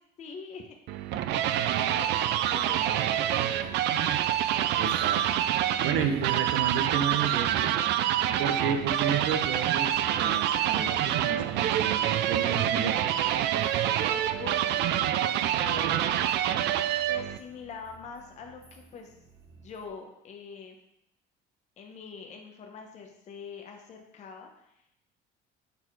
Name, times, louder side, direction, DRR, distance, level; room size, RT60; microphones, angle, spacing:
voice 1, 0.2-0.8 1.1-3.8 4.1-4.3 14.0-16.7 17.0-19.1 19.5-20.8 21.8-24.7, left 5 dB, 35° left, 2 dB, 0.9 m, -44 dB
sound 1, 0.9-17.4, right 11 dB, 65° right, 0.4 m, -26 dB
sound 2, 2.1-19.9, right 4 dB, 15° right, 0.9 m, -51 dB
voice 2, 4.8-5.4 5.8-7.7 8.4-13.2, right 7 dB, 85° right, 8 dB, 0.8 m, -32 dB
6.9 x 4.2 x 4.6 m, 0.79 s
cardioid pair, 160°, 20 cm